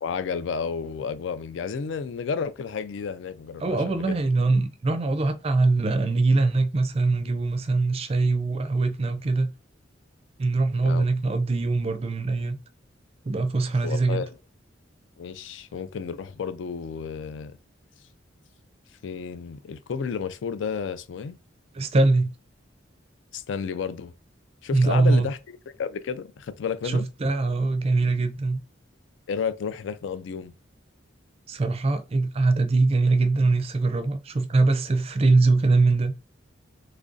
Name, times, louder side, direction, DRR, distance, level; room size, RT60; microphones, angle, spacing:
voice 1, 0.0-4.2 10.7-11.1 13.8-14.3 15.2-17.6 19.0-21.4 23.3-24.1 24.6-25.4 25.8-27.1 29.3-30.5, left 6 dB, 75° left, 0.4 m, -31 dB
voice 2, 3.6-9.5 10.4-12.6 13.3-14.2 21.8-22.3 24.7-25.3 26.8-28.6 31.5-36.1, right 3 dB, 30° right, 0.4 m, -22 dB
3.1 x 2.5 x 3.8 m
head